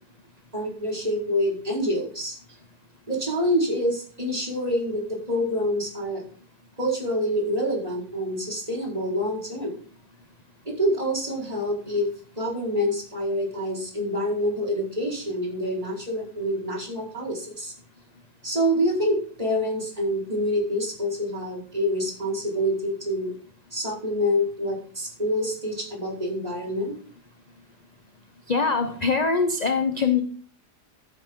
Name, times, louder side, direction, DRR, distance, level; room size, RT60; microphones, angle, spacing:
voice 1, 0.5-2.4 3.1-6.2 6.8-9.7 10.6-12.1 12.4-17.7 18.4-23.3 23.7-26.9, equal, 20° right, -3 dB, 4.7 m, -26 dB
voice 2, 28.5-30.2, left 5 dB, 35° left, 7 dB, 0.8 m, -23 dB
14.0 x 8.8 x 3.7 m, 0.43 s
omnidirectional pair, 1.8 m